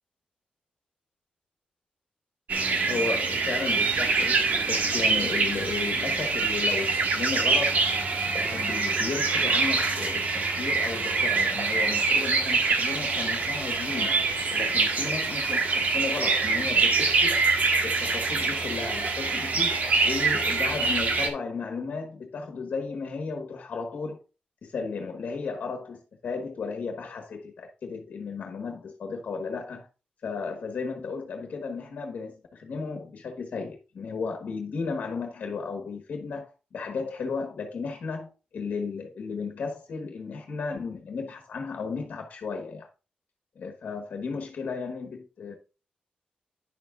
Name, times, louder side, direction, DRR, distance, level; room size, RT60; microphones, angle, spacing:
sound 1, 2.5-21.3, right 4 dB, 65° right, 1.7 m, -25 dB
voice 1, 2.9-7.9 8.3-17.5 17.8-24.2 24.6-29.9 30.2-42.9 43.6-45.6, left 4 dB, 65° left, 1.3 m, -34 dB
10.0 x 7.0 x 2.5 m
wide cardioid pair, 145°, 3 cm